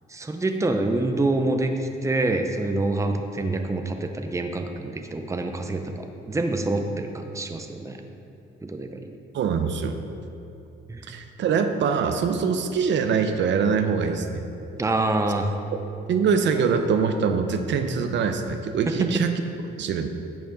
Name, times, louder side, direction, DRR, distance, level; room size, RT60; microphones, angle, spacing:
voice 1, 0.1-8.0 8.6-9.1 10.9-11.2 14.8-15.5 18.9-19.1, right 2 dB, 15° right, 5 dB, 0.7 m, -26 dB
voice 2, 9.3-10.0 11.1-14.4 16.1-19.3 19.8-20.1, right 6 dB, 65° right, 7 dB, 0.7 m, -23 dB
10.5 x 7.1 x 3.8 m, 2.8 s
cardioid pair, 90°, 20 cm